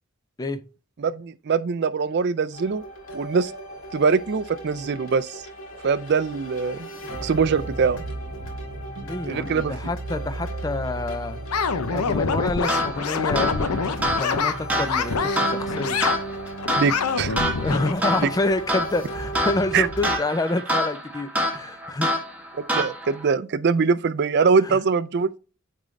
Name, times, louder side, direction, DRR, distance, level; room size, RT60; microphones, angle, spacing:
voice 1, 1.0-2.8 3.1-3.5 3.9-5.4 5.8-6.9 7.2-8.0 9.0-9.7 16.8-17.4 19.7-19.9 22.6-25.4, right 5 dB, 50° right, 0.4 m, -23 dB
sound 1, 2.5-20.2, right 1 dB, 65° left, 1.9 m, -35 dB
voice 2, 9.0-11.4 11.9-16.0 17.5-22.1 24.6-24.8, left 2 dB, 15° left, 0.4 m, -28 dB
sound 2, 11.5-14.5 14.9-15.4 15.7-16.2 16.6-17.9, left 5 dB, 90° left, 0.7 m, -25 dB
sound 3, 12.7-23.3, equal, 5° right, 1.2 m, -27 dB
9.0 x 3.8 x 3.1 m
head